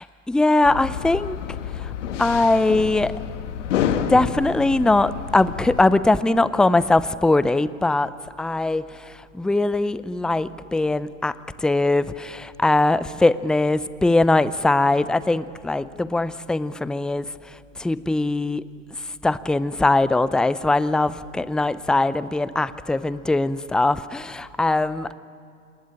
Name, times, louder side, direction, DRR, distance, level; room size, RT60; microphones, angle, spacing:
voice 1, 0.0-1.4 2.2-3.1 4.1-8.1 8.4-8.9 9.3-17.3 17.8-18.6 19.2-25.1, left 2 dB, ahead, 16 dB, 0.6 m, -21 dB
sound 1, 0.6-5.9, left 8 dB, 65° left, 1.8 m, -29 dB
27.5 x 20.0 x 9.9 m, 2.5 s
hypercardioid pair, 90°, 38 cm